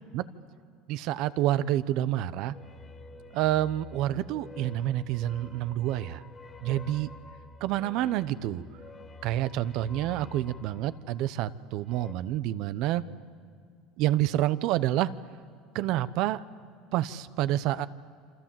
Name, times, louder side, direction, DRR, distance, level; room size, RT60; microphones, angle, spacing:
voice 1, 0.9-2.5 3.3-6.2 6.6-7.1 7.6-8.6 9.2-13.0 14.0-15.1 15.7-16.4 16.9-17.9, right 13 dB, 65° right, 15 dB, 0.9 m, -28 dB
sound 1, 2.4-12.1, left 2 dB, 30° left, 1.9 m, -49 dB
28.5 x 26.0 x 7.6 m, 2.2 s
supercardioid pair, 110°, 0 cm